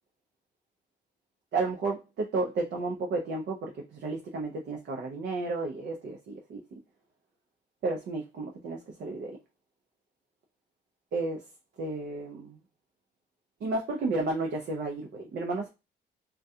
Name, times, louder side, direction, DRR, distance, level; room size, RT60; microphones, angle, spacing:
voice 1, 1.5-6.6 7.8-9.4 11.1-11.4 11.8-12.6 13.6-15.7, right 3 dB, 60° right, 0.5 m, -32 dB
2.3 x 2.2 x 2.7 m
cardioid pair, 90°, 20 cm